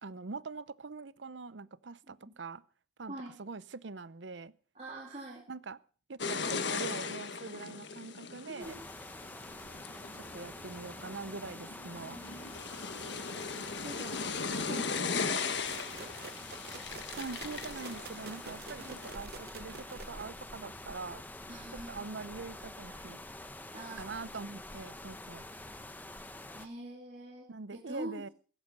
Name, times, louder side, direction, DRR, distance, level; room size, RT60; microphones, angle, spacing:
voice 1, 0.0-2.6 3.0-4.5 5.5-5.8 6.1-8.8 10.1-12.2 17.1-21.2 21.7-23.2 24.0-25.4 27.5-28.3, right 4 dB, 80° right, 18 dB, 0.8 m, -43 dB
voice 2, 4.7-5.4 8.4-8.9 12.0-12.5 13.0-13.1 13.8-14.2 14.5-16.1 18.8-19.0 21.5-22.1 23.7-24.0 26.5-27.5 27.7-28.2, right 1 dB, 35° right, -2 dB, 2.6 m, -45 dB
sound 1, 6.2-19.1, left 5 dB, 70° left, 1.5 m, -38 dB
sound 2, 8.6-26.7, left 1 dB, 10° left, 1.0 m, -47 dB
sound 3, 15.7-20.5, right 5 dB, 55° right, 1.1 m, -48 dB
17.0 x 14.5 x 5.4 m, 0.41 s
head